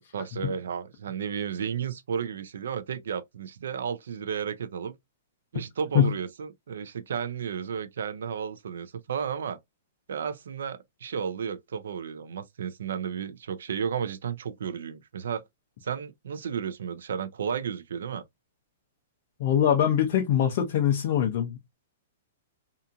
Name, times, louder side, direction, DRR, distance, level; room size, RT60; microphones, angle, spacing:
voice 1, 0.1-5.0 5.5-9.6 10.1-15.4 15.8-18.2, right 7 dB, 80° right, 0.4 m, -33 dB
voice 2, 19.4-21.7, left 9 dB, 40° left, 0.5 m, -23 dB
2.8 x 2.4 x 2.3 m
hypercardioid pair, 175°, 0 cm